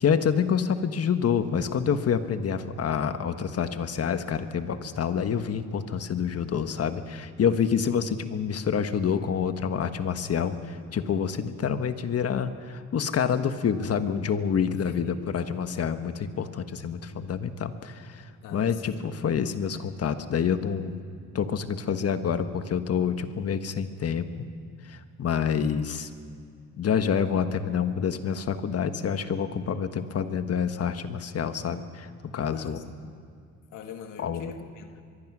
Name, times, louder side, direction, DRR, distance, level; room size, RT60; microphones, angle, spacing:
voice 1, 0.0-18.2 18.5-21.0 21.3-24.3 24.9-26.1 26.8-32.1 32.3-32.8 34.2-34.5, left 7 dB, 50° left, 9 dB, 1.4 m, -27 dB
voice 2, 7.5-7.9 14.7-15.2 18.4-19.0 32.5-33.1 33.7-35.0, left 6 dB, 85° left, 6 dB, 1.8 m, -43 dB
23.5 x 23.0 x 6.2 m, 2.2 s
cardioid pair, 90°, 30 cm